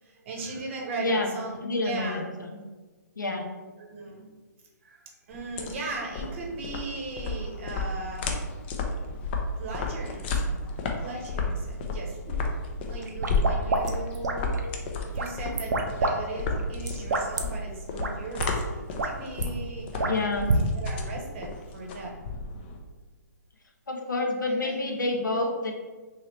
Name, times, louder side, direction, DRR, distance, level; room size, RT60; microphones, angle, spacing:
voice 1, 0.0-2.2 3.8-4.3 4.8-8.4 9.6-14.6 15.0-22.1 24.5-24.8, right 3 dB, 40° right, -1 dB, 0.8 m, -38 dB
voice 2, 1.0-1.3 1.6-2.6 3.2-3.5 20.0-20.5 23.9-25.7, left 2 dB, 90° left, 2 dB, 0.7 m, -28 dB
sound 1, 5.3-22.8, left 3 dB, 35° left, 0.4 m, -32 dB
sound 2, 13.0-14.7 15.1-16.1 16.4-17.4 18.0-18.1 18.4-18.5 18.8-19.5 20.0-20.6, right 3 dB, 65° right, 0.5 m, -27 dB
2.9 x 2.7 x 3.1 m, 1.3 s
hypercardioid pair, 135°, 10 cm